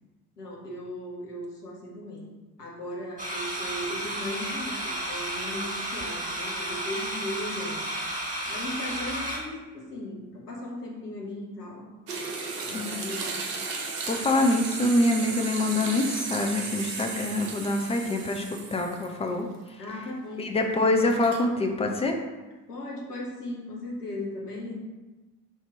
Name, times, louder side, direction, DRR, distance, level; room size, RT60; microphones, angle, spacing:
voice 1, 0.4-2.3 2.6-7.8 8.5-11.9 12.7-13.4 19.8-20.5 22.7-24.7, left 1 dB, 85° left, -3 dB, 0.8 m, -37 dB
sound 1, 3.2-9.4, right 1 dB, 15° right, 1.5 m, -32 dB
sound 2, 12.1-19.3 19.7-19.8 21.0-21.4, right 4 dB, 80° right, 0.6 m, -35 dB
voice 2, 14.1-18.5 18.7-19.5 20.4-22.1, left 2 dB, 15° left, 3 dB, 0.3 m, -25 dB
3.3 x 2.8 x 4.3 m, 1.2 s
figure-of-eight pair, 45°, 46 cm